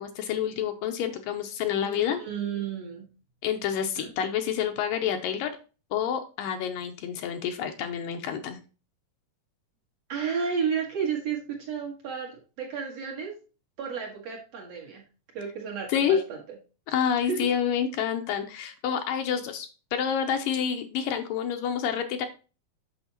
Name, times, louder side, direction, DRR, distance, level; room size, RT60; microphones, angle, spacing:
voice 1, 0.0-2.2 3.4-5.5 5.9-8.6 15.9-16.2 16.9-22.3, left 8 dB, 80° left, 6 dB, 2.3 m, -28 dB
voice 2, 1.8-3.1 4.0-4.1 10.1-12.3 12.6-13.4 13.8-15.0 15.3-16.4 17.2-17.4, right 6 dB, 50° right, -2 dB, 2.7 m, -32 dB
8.1 x 6.6 x 2.9 m, 0.33 s
omnidirectional pair, 4.3 m